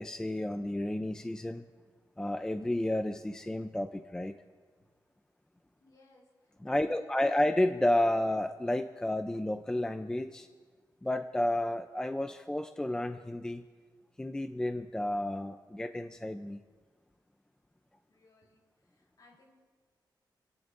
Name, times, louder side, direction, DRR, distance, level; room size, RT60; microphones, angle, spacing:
voice 1, 0.0-1.6 2.2-4.3 6.6-10.5 11.0-13.6 14.2-16.6, left 1 dB, 10° left, 7 dB, 0.5 m, -31 dB
voice 2, 5.8-6.2 6.7-7.4 18.1-18.6 18.9-19.5, left 2 dB, 55° left, -3 dB, 6.5 m, -58 dB
30.0 x 17.5 x 2.6 m, 1.5 s
wide cardioid pair, 160°, 8 cm